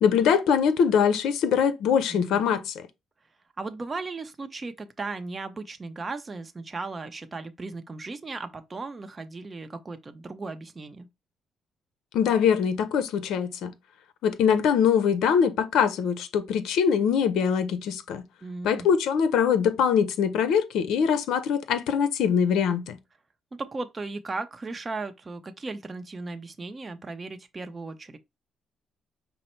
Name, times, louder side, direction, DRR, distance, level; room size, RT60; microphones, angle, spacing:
voice 1, 0.0-2.8 12.1-13.7 14.2-18.2 18.6-23.0, left 7 dB, 85° left, 0.6 m, -23 dB
voice 2, 2.1-2.7 3.6-11.1 18.4-18.9 23.6-28.2, right 3 dB, 30° right, 0.7 m, -36 dB
5.3 x 2.0 x 4.4 m
cardioid pair, 90°, 0 cm